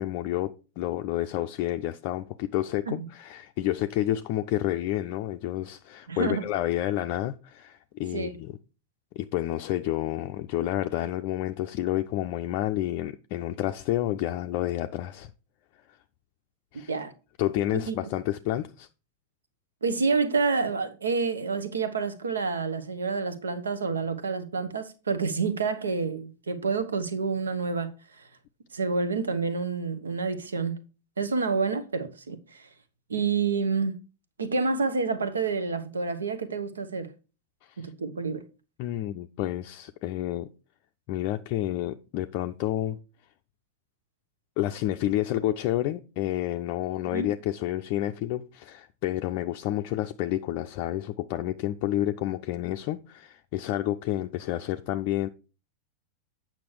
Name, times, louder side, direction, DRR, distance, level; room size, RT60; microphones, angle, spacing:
voice 1, 0.0-8.6 9.2-15.3 16.7-16.9 17.4-18.9 37.6-37.8 38.8-40.5 41.1-43.0 44.6-55.3, left 14 dB, 45° left, 0.4 m, -29 dB
voice 2, 6.1-6.5 8.1-8.3 16.9-17.1 17.7-18.0 19.8-27.9 28.7-30.8 31.2-32.7 33.1-34.0 34.4-37.1 37.8-38.4 47.1-47.3, right 4 dB, 70° right, 1.0 m, -28 dB
8.5 x 6.0 x 4.7 m
figure-of-eight pair, 90°, 0 cm